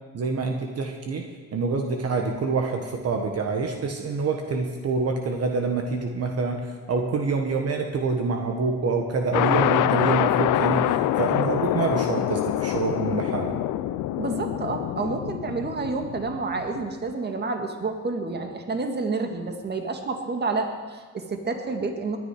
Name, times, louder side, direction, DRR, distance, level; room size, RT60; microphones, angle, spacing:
voice 1, 0.1-1.3 1.5-13.5, right 4 dB, 55° right, 2 dB, 1.5 m, -26 dB
sound 1, 9.3-16.9, left 13 dB, 85° left, 0.6 m, -25 dB
voice 2, 14.2-22.2, right 3 dB, 35° right, 4 dB, 1.8 m, -29 dB
20.5 x 9.9 x 4.9 m, 1.4 s
cardioid pair, 90°, 30 cm